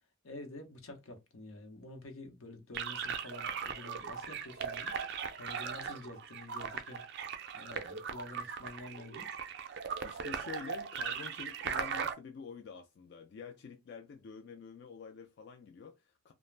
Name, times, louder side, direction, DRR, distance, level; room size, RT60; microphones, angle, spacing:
voice 1, 0.2-7.0 7.5-9.3, left 2 dB, 80° left, 0.8 m, -49 dB
sound 1, 2.7-12.1, right 6 dB, 50° right, 0.4 m, -39 dB
voice 2, 10.0-16.3, left 5 dB, 55° left, 0.3 m, -48 dB
2.4 x 2.0 x 3.1 m
head